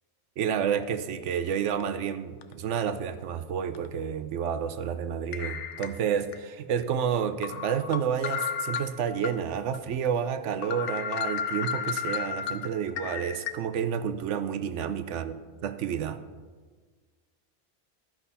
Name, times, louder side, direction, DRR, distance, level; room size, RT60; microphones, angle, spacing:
voice 1, 0.4-15.3 15.6-16.2, right 8 dB, 80° right, 11 dB, 1.0 m, -30 dB
sound 1, 1.8-2.0 2.4-2.5 3.7-3.9 5.3-6.4 6.8-6.9 7.4-9.3 9.7-9.8 10.2-10.3 10.6-13.5, left 7 dB, 80° left, 1.0 m, -33 dB
12.5 x 6.0 x 5.6 m, 1.4 s
omnidirectional pair, 1.2 m